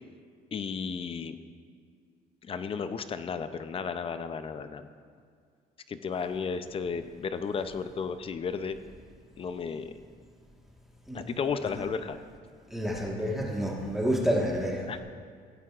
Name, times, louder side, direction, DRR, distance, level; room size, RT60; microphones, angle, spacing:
voice 1, 0.5-1.4 2.4-4.9 5.9-8.8 9.4-9.9 11.1-12.2 14.8-15.0, left 6 dB, 35° left, 10 dB, 0.6 m, -33 dB
voice 2, 12.7-15.0, equal, ahead, -3 dB, 1.5 m, -29 dB
16.5 x 8.9 x 2.5 m, 2.1 s
cardioid pair, 110°, 17 cm